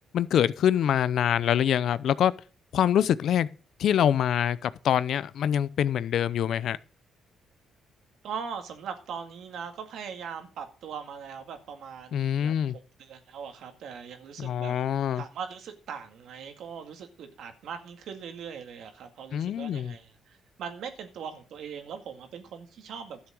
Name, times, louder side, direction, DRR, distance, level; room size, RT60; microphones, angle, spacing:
voice 1, 0.1-2.3 2.7-3.5 3.8-6.8 12.1-12.8 14.4-15.2 19.3-19.9, left 9 dB, 70° left, 0.6 m, -25 dB
voice 2, 8.2-23.3, right 7 dB, 75° right, 2.1 m, -40 dB
12.5 x 7.2 x 6.3 m
cardioid pair, 90°, 0 cm